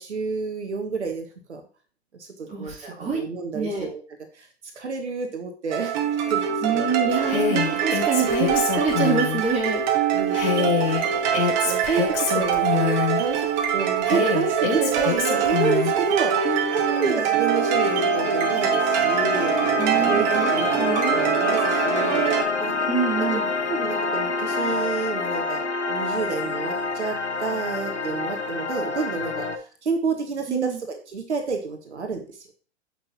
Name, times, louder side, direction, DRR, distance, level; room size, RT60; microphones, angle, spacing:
voice 1, 0.0-1.6 2.2-4.0 4.3-4.5 4.7-6.0 6.3-6.4 6.7-7.3 7.7-7.8 10.1-10.8 11.3-12.0 12.3-13.5 13.7-16.5 16.9-19.6 19.9-20.7 21.1-22.2 22.6-22.7 23.2-23.4 23.7-25.6 25.9-29.4 29.8-32.5, right 4 dB, 80° right, 5 dB, 1.3 m, -29 dB
voice 2, 2.5-3.2 3.5-3.9 6.6-9.8 16.4-17.2 19.8-20.5 20.8-21.3 22.9-23.5 30.5-30.8, right 5 dB, 20° right, -3 dB, 2.8 m, -26 dB
sound 1, 5.7-22.4, right 8 dB, 40° right, 1.3 m, -24 dB
Female speech woman speaking, 7.3-9.4 10.3-13.2 14.0-15.9, left 9 dB, 55° left, 2.4 m, -25 dB
sound 2, 16.7-29.6, left 4 dB, 85° left, 0.9 m, -27 dB
7.6 x 5.9 x 2.9 m, 0.39 s
figure-of-eight pair, 110°, 34 cm